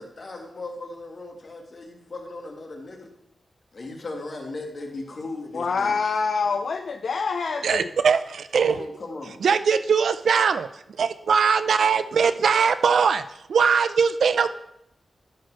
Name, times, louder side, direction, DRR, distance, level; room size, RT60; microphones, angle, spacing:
voice 1, 0.0-3.1 3.7-6.0 8.7-9.4, left 2 dB, 50° left, 1 dB, 2.0 m, -37 dB
voice 2, 5.5-7.9, left 5 dB, 70° left, 7 dB, 0.5 m, -26 dB
voice 3, 7.6-8.9 9.4-10.7 11.0-13.2 13.5-14.5, right 6 dB, 85° right, 13 dB, 0.5 m, -21 dB
12.5 x 4.4 x 6.3 m, 0.80 s
wide cardioid pair, 100°, 0 cm